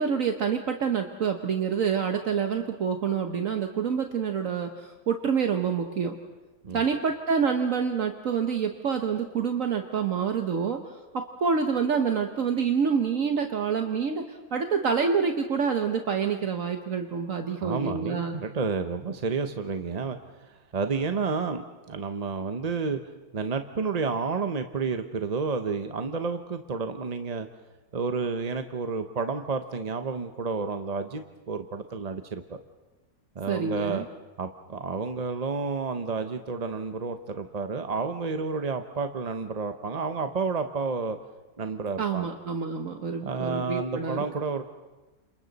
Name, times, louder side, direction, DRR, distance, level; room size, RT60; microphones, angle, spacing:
voice 1, 0.0-6.2 6.7-10.8 11.1-18.3 33.5-34.0 42.0-44.2, right 6 dB, 60° right, 5 dB, 1.4 m, -27 dB
voice 2, 17.6-21.6 21.9-23.0 23.3-27.5 27.9-32.6 33.3-34.0 34.4-41.2 41.6-42.3 43.2-44.6, right 4 dB, 35° right, 7 dB, 0.7 m, -30 dB
30.0 x 27.0 x 4.1 m, 1.2 s
omnidirectional pair, 1.6 m